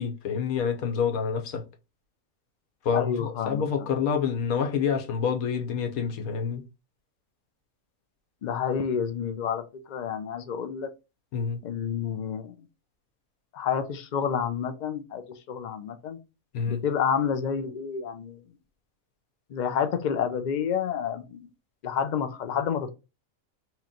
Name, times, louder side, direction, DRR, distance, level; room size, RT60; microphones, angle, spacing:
voice 1, 0.0-1.6 2.8-6.6 11.3-11.6 16.5-16.8, left 6 dB, 90° left, 1.3 m, -27 dB
voice 2, 2.9-3.6 8.4-9.6 9.9-10.9 11.6-12.5 13.5-16.2 16.7-18.4 19.5-21.5 21.8-22.9, left 7 dB, 65° left, 0.4 m, -29 dB
3.1 x 2.9 x 3.7 m
omnidirectional pair, 1.5 m